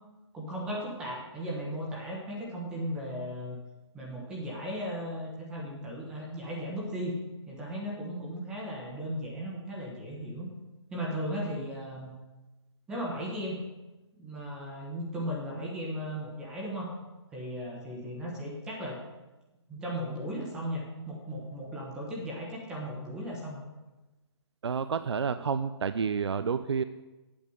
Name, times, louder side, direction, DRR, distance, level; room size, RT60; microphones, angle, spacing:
voice 1, 0.3-3.6 3.9-7.2 7.5-10.5 10.9-12.1 12.9-13.6 14.2-16.9 17.3-19.0 19.7-23.6, equal, 5° right, -3 dB, 1.1 m, -36 dB
voice 2, 24.6-26.8, right 6 dB, 65° right, 12 dB, 0.5 m, -29 dB
8.7 x 7.0 x 7.7 m, 1.1 s
hypercardioid pair, 175°, 15 cm